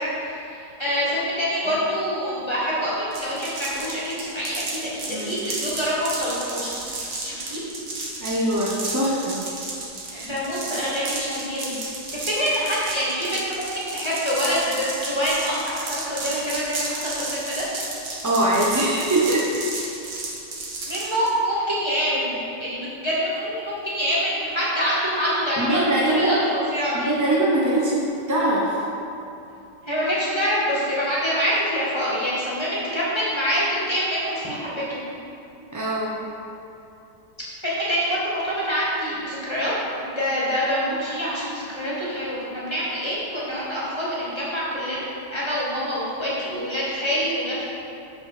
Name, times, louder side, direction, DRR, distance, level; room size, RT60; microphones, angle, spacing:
voice 1, 0.0-7.6 10.1-11.8 12.1-17.6 20.9-25.8 26.1-27.1 29.9-35.0 37.6-47.6, equal, 15° left, -8 dB, 1.9 m, -26 dB
sound 1, 3.1-21.3, right 3 dB, 50° right, 1.6 m, -33 dB
voice 2, 8.2-9.4 10.1-10.3 18.2-19.5 25.6-26.4 26.9-28.8 35.7-36.2, right 1 dB, 15° right, -6 dB, 0.6 m, -22 dB
6.4 x 5.7 x 6.7 m, 2.8 s
omnidirectional pair, 2.0 m